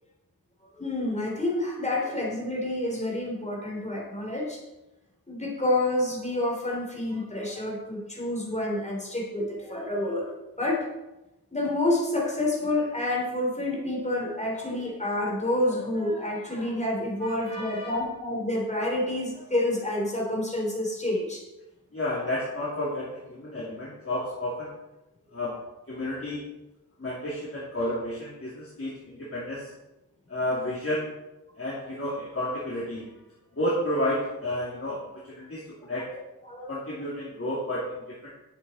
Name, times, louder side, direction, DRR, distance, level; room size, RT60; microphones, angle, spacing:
voice 1, 0.8-4.6 5.3-10.9 11.5-21.4 36.5-36.8, left 1 dB, 20° left, -2 dB, 3.3 m, -28 dB
voice 2, 17.2-18.0 21.9-24.7 25.3-25.6 25.9-26.4 27.0-29.7 30.3-31.1 31.6-33.1 33.5-36.1 36.7-38.3, left 1 dB, 35° left, -7 dB, 2.7 m, -31 dB
11.0 x 8.2 x 4.2 m, 0.99 s
wide cardioid pair, 95°, 38 cm